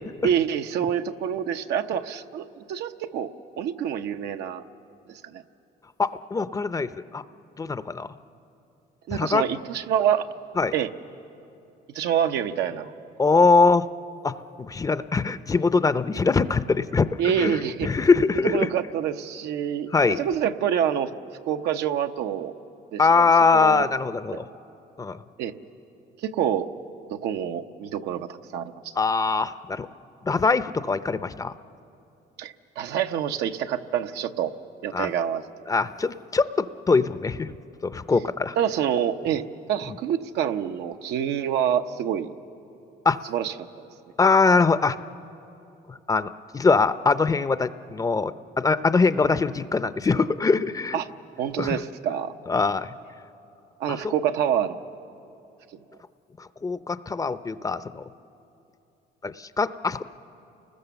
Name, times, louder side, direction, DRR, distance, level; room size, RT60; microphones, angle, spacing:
voice 1, 0.2-3.3 3.6-4.6 5.3-5.4 9.1-10.3 10.7-10.9 11.9-12.9 17.2-17.9 18.4-21.1 21.5-22.5 22.9-23.9 24.3-24.4 25.4-25.5 26.2-26.7 27.1-28.9 32.4-34.5 34.8-35.4 38.6-39.4 39.7-42.3 43.3-43.5 50.9-51.1 51.4-52.3 53.8-54.9, right 9 dB, 80° right, 7 dB, 0.8 m, -27 dB
voice 2, 6.0-7.2 7.6-8.1 9.1-9.4 10.6-10.7 13.2-13.8 14.2-17.1 17.4-18.7 19.9-20.2 23.0-24.4 25.0-25.2 29.0-29.9 30.2-31.5 34.9-35.1 35.7-37.5 37.8-38.5 43.1-43.2 44.2-45.0 46.1-48.3 48.6-51.0 51.6-51.8 52.5-52.9 53.9-54.0 56.4-58.0 59.2-60.0, left 4 dB, 20° left, 13 dB, 0.5 m, -22 dB
29.5 x 20.0 x 7.0 m, 2.8 s
cardioid pair, 110°, 17 cm